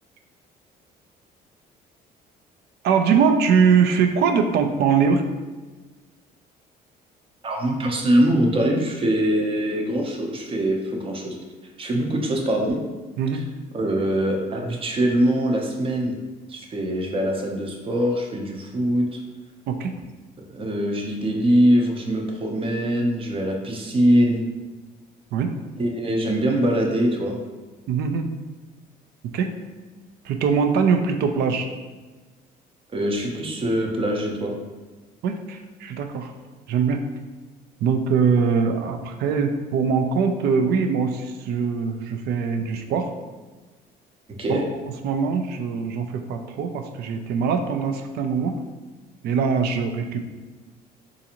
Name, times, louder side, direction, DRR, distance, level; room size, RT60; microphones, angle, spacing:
voice 1, 2.8-5.2 13.2-13.4 19.7-19.9 25.3-25.5 27.9-28.3 29.3-29.5 30.2-31.7 35.2-36.3 36.7-37.0 37.8-43.1 44.5-44.6 45.0-48.5 49.2-50.2, right 6 dB, 70° right, 6 dB, 0.4 m, -22 dB
voice 2, 7.4-11.4 11.8-12.8 13.3-13.4 13.7-16.2 16.5-19.2 20.5-24.4 25.8-27.4 32.9-34.6 44.4-44.7, right 1 dB, 35° right, 1 dB, 0.6 m, -23 dB
3.9 x 2.5 x 2.9 m, 1.3 s
cardioid pair, 110°, 17 cm